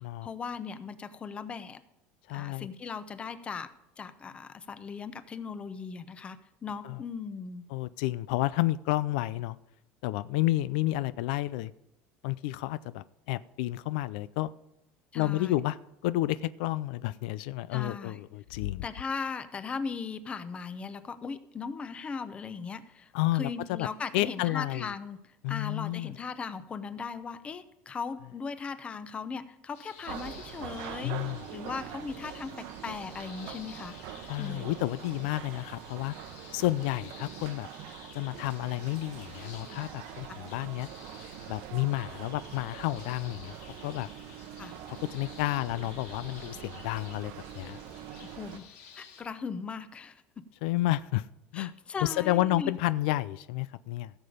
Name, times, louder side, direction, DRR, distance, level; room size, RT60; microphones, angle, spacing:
voice 1, 0.2-1.8 2.3-3.7 4.0-7.6 15.1-15.5 17.7-18.2 18.8-31.2 31.5-34.0 34.4-34.7 40.3-40.4 44.6-44.7 48.2-48.7 49.0-50.2 51.5-52.7, left 5 dB, 25° left, 12 dB, 0.7 m, -38 dB
voice 2, 2.3-2.7 6.8-7.0 7.7-9.6 10.0-11.7 12.2-14.5 15.1-15.8 16.0-18.8 23.1-23.9 24.1-24.9 25.4-26.1 31.0-31.4 34.3-36.1 36.5-37.7 38.1-40.9 41.5-43.5 43.8-44.1 45.1-47.8 50.6-51.3 51.5-51.7 52.0-54.1, left 16 dB, 85° left, 16 dB, 0.4 m, -30 dB
sound 1, 29.7-49.2, left 7 dB, 60° left, 2.1 m, -53 dB
sound 2, 30.1-48.6, right 10 dB, 70° right, 1.0 m, -44 dB
15.5 x 6.9 x 5.1 m, 0.89 s
cardioid pair, 140°, 5 cm